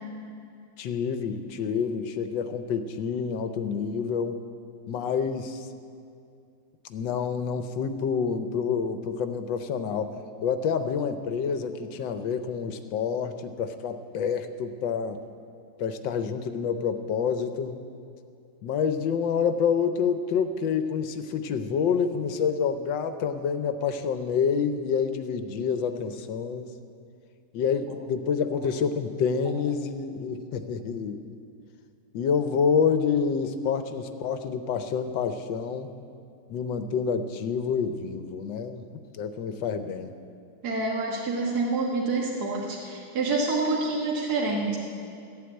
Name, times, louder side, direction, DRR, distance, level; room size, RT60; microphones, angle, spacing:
voice 1, 0.8-4.4 4.9-5.7 6.9-15.2 15.8-17.8 18.6-26.7 27.5-31.2 32.1-35.9 36.5-40.1, left 6 dB, 70° left, 9 dB, 1.3 m, -28 dB
voice 2, 40.6-44.8, right 3 dB, 50° right, -2 dB, 1.8 m, -27 dB
14.0 x 8.2 x 8.9 m, 2.4 s
omnidirectional pair, 2.3 m